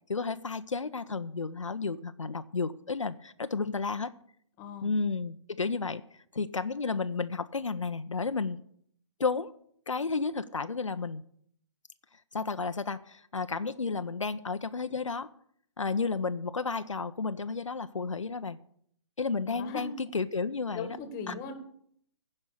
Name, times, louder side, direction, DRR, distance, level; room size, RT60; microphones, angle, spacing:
voice 1, 0.1-4.1 4.8-8.6 9.2-9.5 9.9-11.2 12.3-15.3 15.8-18.6 19.2-20.9 21.3-21.4, left 4 dB, 85° left, 10 dB, 0.7 m, -32 dB
voice 2, 4.6-4.9 19.5-19.9 20.7-21.5, left 5 dB, 20° left, 9 dB, 1.6 m, -39 dB
15.5 x 5.4 x 8.4 m, 0.66 s
figure-of-eight pair, 135°, 16 cm